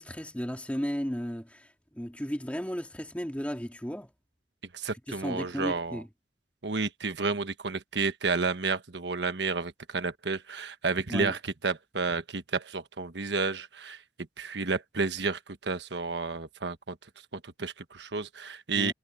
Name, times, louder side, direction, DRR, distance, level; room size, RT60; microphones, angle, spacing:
voice 1, 0.0-4.1 5.1-6.1 11.1-11.3 18.8-18.9, equal, 10° left, 2.4 m, -34 dB
voice 2, 4.7-6.0 6.6-14.0 14.4-17.0 17.3-18.9, right 4 dB, 85° right, 1.3 m, -31 dB
head